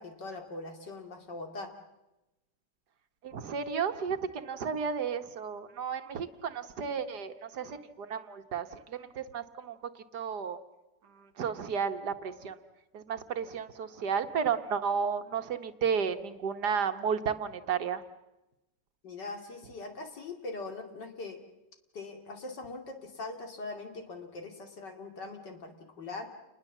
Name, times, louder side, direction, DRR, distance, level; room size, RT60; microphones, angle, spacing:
voice 1, 0.0-1.7 19.0-21.4 21.9-26.3, left 3 dB, 70° left, 4 dB, 3.2 m, -41 dB
voice 2, 3.2-9.8 10.1-10.6 11.4-12.6 12.9-18.0, right 6 dB, 65° right, 8 dB, 1.7 m, -33 dB
29.0 x 21.0 x 7.3 m, 0.98 s
omnidirectional pair, 1.9 m